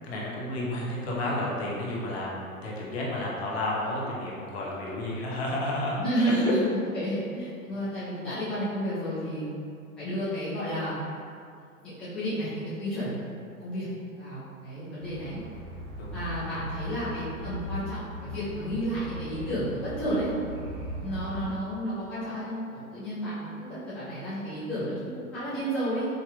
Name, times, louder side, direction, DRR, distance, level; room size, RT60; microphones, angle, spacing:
voice 1, 0.0-6.6 7.3-7.4 16.0-16.2, left 1 dB, 45° left, -4 dB, 0.9 m, -31 dB
voice 2, 6.0-9.7 10.0-11.0 11.8-13.1 13.6-13.9 14.2-15.4 16.1-20.3 21.0-26.1, equal, ahead, -15 dB, 0.5 m, -31 dB
sound 1, 15.0-21.5, equal, 55° right, 0.9 m, -39 dB
5.0 x 2.8 x 2.3 m, 2.4 s
figure-of-eight pair, 115°, 44 cm